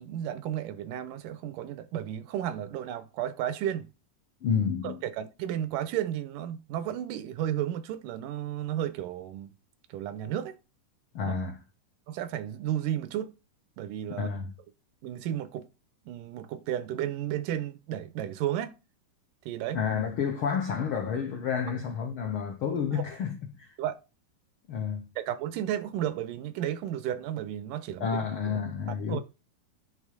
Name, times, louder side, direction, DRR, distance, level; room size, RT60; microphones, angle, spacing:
voice 1, 0.0-3.9 4.8-9.5 9.9-10.6 11.2-11.3 12.1-13.4 13.8-14.3 15.0-15.7 16.1-18.8 19.5-19.8 22.9-23.0 23.8-24.0 25.2-28.2 28.5-28.6 29.1-29.2, right 11 dB, 90° right, 2.4 m, -33 dB
voice 2, 4.4-5.0 11.1-11.6 14.1-14.5 19.7-23.7 24.7-25.1 28.0-29.2, left 6 dB, 80° left, 1.2 m, -30 dB
10.5 x 3.7 x 4.9 m
omnidirectional pair, 3.8 m